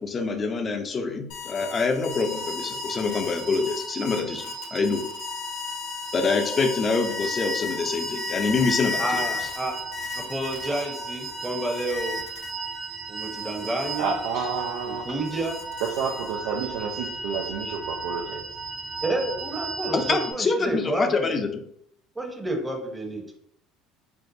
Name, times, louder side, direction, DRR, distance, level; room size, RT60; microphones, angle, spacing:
voice 1, 0.0-4.4 4.7-5.0 6.1-9.2 19.9-21.6, left 4 dB, 35° left, 6 dB, 0.6 m, -25 dB
sound 1, 1.3-12.8 13.2-16.6, left 6 dB, 70° left, 0.9 m, -35 dB
sound 2, 2.1-20.3, right 4 dB, 50° right, 1.3 m, -36 dB
voice 2, 9.0-9.7 10.1-12.2 13.1-14.1 14.9-15.6 19.0-21.3 22.2-23.2, right 1 dB, 15° right, 2 dB, 0.9 m, -30 dB
voice 3, 14.0-15.0 16.0-18.5, right 5 dB, 75° right, -2 dB, 0.5 m, -30 dB
4.5 x 2.1 x 2.7 m, 0.71 s
hypercardioid pair, 70°, 0 cm